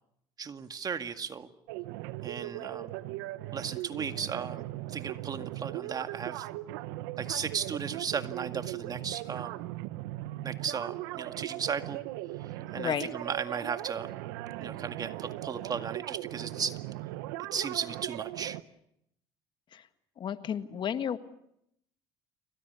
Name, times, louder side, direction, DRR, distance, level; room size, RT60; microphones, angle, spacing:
voice 1, 0.4-1.5 2.2-2.9 3.5-4.6 4.9-6.5 7.2-9.6 10.4-12.0 12.7-14.1 14.6-16.8 17.5-18.6, right 6 dB, 35° right, 8 dB, 2.1 m, -35 dB
sound 1, 1.7-18.6, right 16 dB, 90° right, 1.1 m, -38 dB
voice 2, 12.8-13.1 19.7-19.8 20.2-21.2, left 8 dB, 50° left, 10 dB, 1.7 m, -32 dB
29.0 x 24.5 x 7.0 m, 0.76 s
supercardioid pair, 90°, 11 cm